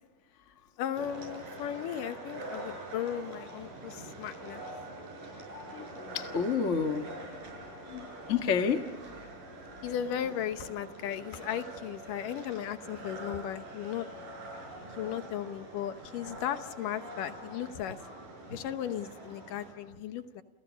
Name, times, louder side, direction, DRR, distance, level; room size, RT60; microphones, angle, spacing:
voice 1, 0.8-4.6 9.8-14.1 14.9-18.0 18.5-20.4, left 10 dB, 70° left, 10 dB, 2.5 m, -36 dB
sound 1, 0.9-19.7, right 1 dB, 65° right, 7.7 m, -45 dB
voice 2, 5.7-7.1 7.9-8.8, left 6 dB, 50° left, 5 dB, 0.8 m, -30 dB
29.5 x 29.0 x 5.2 m, 1.3 s
omnidirectional pair, 4.1 m